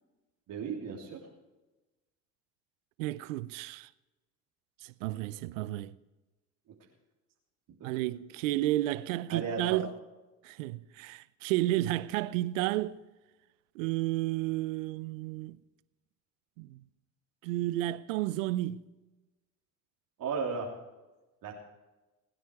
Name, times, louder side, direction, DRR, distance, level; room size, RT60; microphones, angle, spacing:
voice 1, 0.5-1.2 9.3-9.8 20.2-20.7 21.4-21.5, right 5 dB, 60° right, 3.2 m, -34 dB
voice 2, 3.0-3.9 4.8-5.9 7.8-9.9 10.4-13.0 13.7-15.6 16.6-16.8 17.4-18.9, right 16 dB, 85° right, 0.7 m, -32 dB
21.0 x 9.5 x 4.7 m
hypercardioid pair, 65°, 38 cm